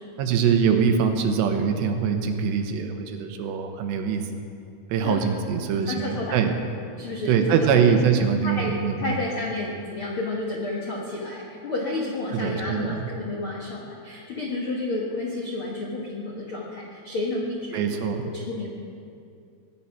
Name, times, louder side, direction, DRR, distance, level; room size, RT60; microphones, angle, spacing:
voice 1, 0.2-4.2 4.9-6.5 7.3-9.2 12.3-13.0 17.7-18.3, right 6 dB, 85° right, 5 dB, 3.3 m, -23 dB
voice 2, 5.7-6.4 7.0-7.8 8.4-17.9 18.2-18.7, left 2 dB, 80° left, -3 dB, 1.2 m, -31 dB
19.0 x 10.0 x 5.8 m, 2.5 s
omnidirectional pair, 4.9 m